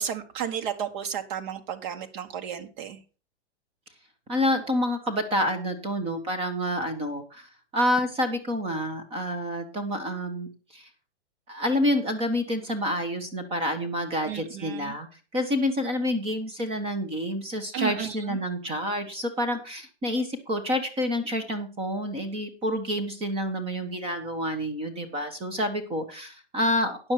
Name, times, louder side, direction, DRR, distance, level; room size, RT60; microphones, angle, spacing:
voice 1, 0.0-3.0 14.3-15.0 17.7-18.4, right 9 dB, 40° right, 6 dB, 1.7 m, -33 dB
voice 2, 4.3-10.9 11.5-15.1 15.3-27.1, left 1 dB, 15° right, 10 dB, 1.4 m, -28 dB
9.7 x 7.2 x 6.0 m, 0.35 s
hypercardioid pair, 155°, 35 cm